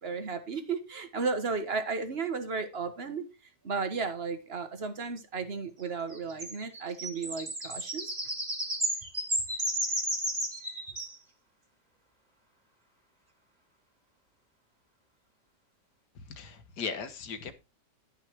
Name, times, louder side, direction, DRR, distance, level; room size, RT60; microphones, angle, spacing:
voice 1, 0.0-3.2 3.6-8.1, right 4 dB, 35° right, 1.5 m, -34 dB
sound 1, 6.1-11.2, right 1 dB, 20° right, 2.5 m, -33 dB
voice 2, 16.3-17.5, left 5 dB, 70° left, 1.8 m, -37 dB
11.5 x 5.6 x 4.6 m
omnidirectional pair, 1.9 m